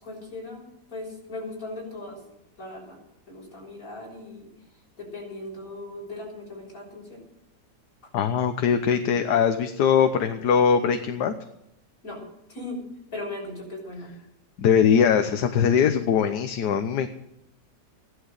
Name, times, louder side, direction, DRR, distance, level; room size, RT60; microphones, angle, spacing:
voice 1, 0.0-0.6 0.9-2.2 2.6-3.0 3.3-4.5 5.0-7.2 12.0-12.2 12.5-12.8 13.1-14.1, left 2 dB, 50° left, -1 dB, 6.5 m, -38 dB
voice 2, 8.1-11.3 14.6-17.1, left 7 dB, 75° left, 8 dB, 1.5 m, -21 dB
16.0 x 11.5 x 6.6 m, 0.83 s
omnidirectional pair, 1.8 m